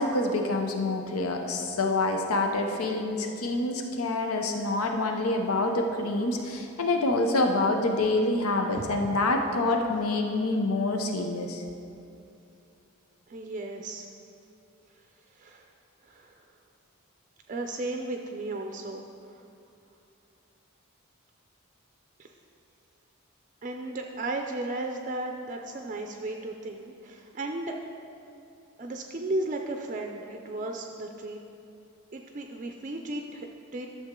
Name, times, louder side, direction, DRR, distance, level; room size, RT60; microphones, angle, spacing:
voice 1, 0.0-11.6, left 2 dB, 85° left, 4 dB, 0.7 m, -27 dB
voice 2, 8.7-9.2 9.6-9.7 13.3-14.1 15.3-15.7 16.0-16.4 17.5-19.0 19.3-19.4 22.2-22.3 23.6-27.8 28.8-31.4 32.1-33.9, right 2 dB, 35° right, 3 dB, 0.4 m, -35 dB
12.0 x 6.7 x 3.7 m, 2.7 s
head